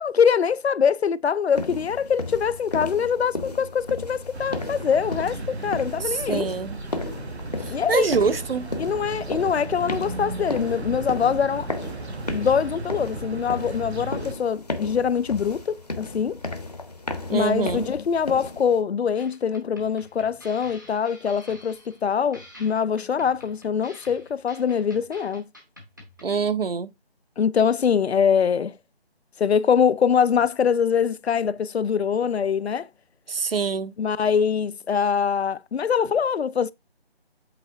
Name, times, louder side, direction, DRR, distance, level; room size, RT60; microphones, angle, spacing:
voice 1, 0.0-6.5 7.7-8.1 8.8-11.7 12.3-16.4 17.3-25.4 27.4-28.7 29.4-32.9 34.0-36.7, left 7 dB, 80° left, 0.5 m, -23 dB
sound 1, 1.5-18.8, left 2 dB, 40° left, 0.7 m, -34 dB
sound 2, 4.3-14.3, right 2 dB, 85° right, 1.1 m, -35 dB
voice 2, 6.0-6.8 7.6-8.7 17.3-17.9 26.2-26.9 33.3-33.9, right 5 dB, 65° right, 0.6 m, -25 dB
sound 3, 19.2-26.3, left 1 dB, 20° right, 0.8 m, -48 dB
8.1 x 3.4 x 3.5 m
figure-of-eight pair, 175°, 32 cm